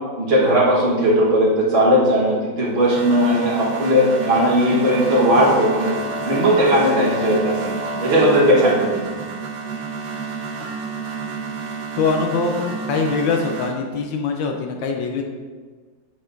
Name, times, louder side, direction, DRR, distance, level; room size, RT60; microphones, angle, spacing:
voice 1, 0.2-5.9 6.2-7.7 8.0-9.1, equal, 35° right, -7 dB, 1.3 m, -17 dB
sound 1, 2.6-13.7, right 4 dB, 70° right, 1.6 m, -29 dB
voice 2, 12.0-15.2, left 4 dB, 80° left, 3 dB, 1.3 m, -23 dB
8.1 x 6.4 x 2.6 m, 1.5 s
omnidirectional pair, 2.1 m